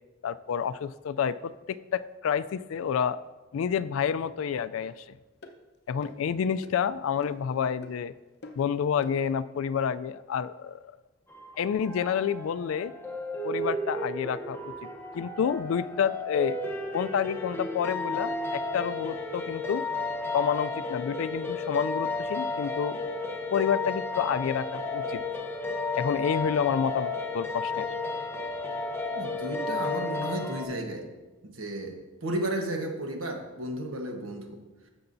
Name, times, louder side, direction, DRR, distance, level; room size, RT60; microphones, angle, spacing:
voice 1, 0.2-3.2 3.5-5.2 5.9-8.1 8.6-10.8 11.6-12.9 13.4-14.9 15.1-16.6 16.9-19.8 20.3-23.0 23.5-25.2 26.0-27.9, left 7 dB, 70° left, 14 dB, 0.3 m, -29 dB
sound 1, 4.8-4.9 5.4-5.6 6.0-6.3 6.6-6.8 7.2-7.5 7.8-8.0 8.4-8.7 9.0-9.2, left 2 dB, 55° left, 0.7 m, -45 dB
sound 2, 11.3-30.6, left 2 dB, 10° left, 0.8 m, -33 dB
voice 2, 29.1-31.1 31.4-34.6, right 1 dB, 75° right, 3 dB, 1.2 m, -33 dB
12.5 x 6.9 x 2.6 m, 1.2 s
head